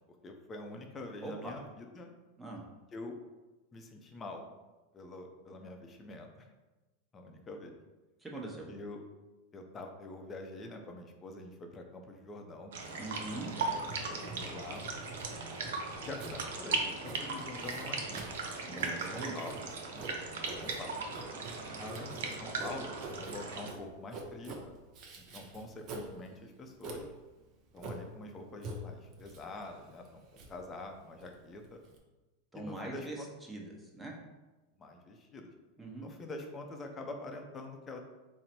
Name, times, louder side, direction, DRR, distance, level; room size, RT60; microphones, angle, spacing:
voice 1, 0.2-2.1 2.9-3.1 3.7-4.4 4.9-6.5 7.1-7.7 8.7-9.0 9.5-12.8 13.6-14.8 16.0-18.3 18.9-19.6 20.6-21.0 21.8-24.6 25.2-27.1 27.7-31.8 32.5-33.3 34.8-35.5 36.0-38.0, left 2 dB, 25° left, 3 dB, 0.6 m, -45 dB
voice 2, 1.2-1.5 2.4-2.6 8.2-8.7 13.0-13.5 18.6-19.3 19.9-20.1 32.5-34.1 35.8-36.0, right 2 dB, 5° right, -2 dB, 0.9 m, -42 dB
sound 1, 12.7-23.7, right 4 dB, 75° right, 0.6 m, -38 dB
Writing, 12.8-32.0, right 2 dB, 45° right, 0.7 m, -47 dB
3.8 x 2.1 x 4.4 m, 1.1 s
hypercardioid pair, 110°, 0 cm